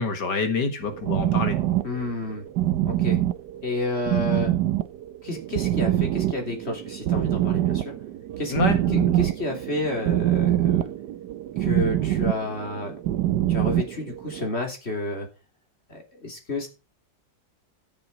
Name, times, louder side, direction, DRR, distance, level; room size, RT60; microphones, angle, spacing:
voice 1, 0.0-1.6 8.5-9.1, left 4 dB, 65° left, 7 dB, 2.2 m, -26 dB
sound 1, 0.8-14.4, right 13 dB, 70° right, 1.3 m, -25 dB
voice 2, 1.8-2.4 2.8-3.2 3.6-4.5 5.2-7.9 8.4-8.5 9.2-10.9 11.6-12.9 13.5-15.3 15.9-16.7, left 2 dB, 35° left, 2 dB, 3.6 m, -30 dB
13.5 x 7.2 x 4.9 m, 0.29 s
omnidirectional pair, 2.0 m